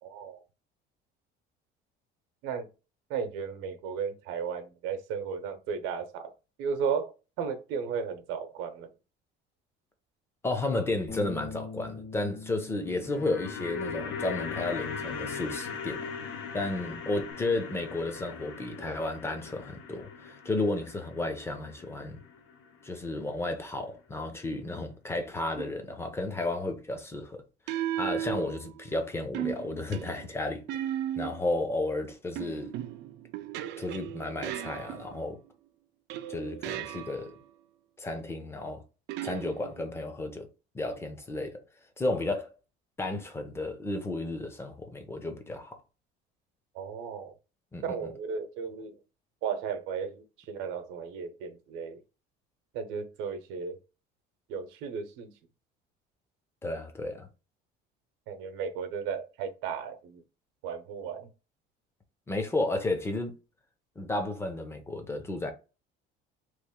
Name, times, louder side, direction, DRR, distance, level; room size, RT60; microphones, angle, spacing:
voice 1, 0.0-0.4 2.4-2.7 3.1-6.3 6.6-8.9 46.7-47.3 47.8-48.9 49.4-52.0 52.7-53.8 54.5-55.3 58.3-60.2 60.6-61.3, right 6 dB, 85° right, 0.8 m, -35 dB
voice 2, 10.4-16.0 16.5-22.2 22.8-27.4 27.7-30.9 31.2-32.7 33.8-35.4 36.3-37.3 38.0-38.8 39.2-40.5 40.7-41.6 42.0-42.5 43.0-45.7 47.7-48.0 56.6-57.3 62.3-63.4 64.0-65.5, left 2 dB, 10° left, 0.6 m, -33 dB
Bass guitar, 11.1-17.3, left 5 dB, 45° left, 1.2 m, -46 dB
sound 1, 12.8-23.1 23.3-23.4, left 5 dB, 90° left, 0.9 m, -39 dB
sound 2, 25.6-25.9 27.7-28.9 29.3-31.5 32.4-35.4 36.1-37.4 39.1-40.0, right 12 dB, 60° right, 0.4 m, -36 dB
3.1 x 2.5 x 3.6 m
cardioid pair, 155°, 20 cm